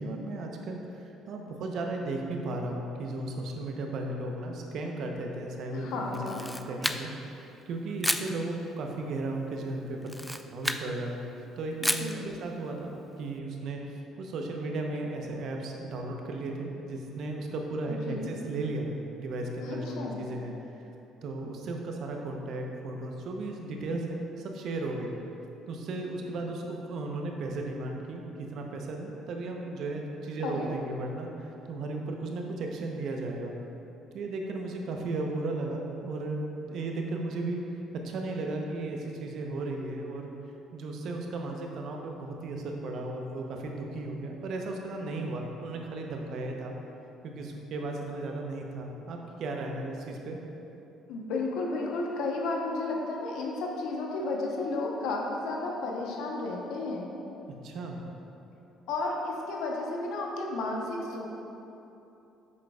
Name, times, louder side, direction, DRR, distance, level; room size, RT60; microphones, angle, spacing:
voice 1, 0.0-10.1 10.5-11.2 11.6-20.5 21.2-25.1 25.7-33.5 34.1-37.6 38.0-40.3 40.7-46.7 47.2-50.4 57.4-58.0, right 2 dB, 65° right, 1 dB, 0.7 m, -35 dB
voice 2, 5.7-6.5 12.0-12.3 18.1-18.3 19.6-20.2 30.4-30.7 51.1-57.1 58.9-61.3, left 2 dB, 75° left, 0 dB, 0.8 m, -33 dB
Camera, 6.1-7.3 8.0-8.3 10.0-10.9 11.8-12.2, equal, 5° left, 0.3 m, -31 dB
7.3 x 6.1 x 2.3 m, 2.9 s
supercardioid pair, 65°, 0 cm